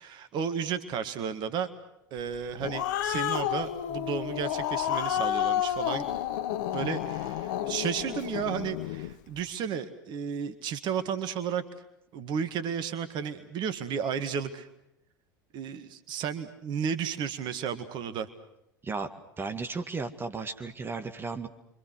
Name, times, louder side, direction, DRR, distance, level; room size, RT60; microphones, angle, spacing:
voice 1, 0.0-1.7 2.1-6.1 6.7-11.6 12.1-14.7 15.5-18.3, right 7 dB, 45° right, 10 dB, 1.9 m, -33 dB
Growling, 2.3-9.1, left 11 dB, 60° left, 1.0 m, -30 dB
voice 2, 19.4-21.5, right 4 dB, 20° right, 6 dB, 1.9 m, -34 dB
29.5 x 24.5 x 6.3 m, 0.84 s
figure-of-eight pair, 75°, 11 cm